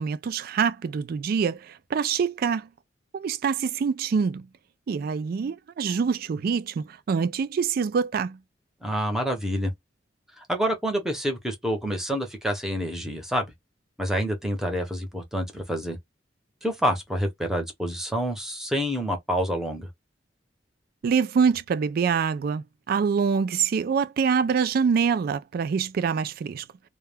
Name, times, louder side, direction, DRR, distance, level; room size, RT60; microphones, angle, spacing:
voice 1, 0.0-2.7 3.1-4.5 4.9-8.4 21.0-26.6, right 6 dB, 55° right, 0.3 m, -25 dB
voice 2, 8.8-9.7 10.5-13.4 14.0-16.0 16.6-19.9, equal, 5° right, 0.7 m, -27 dB
2.2 x 2.1 x 3.2 m
head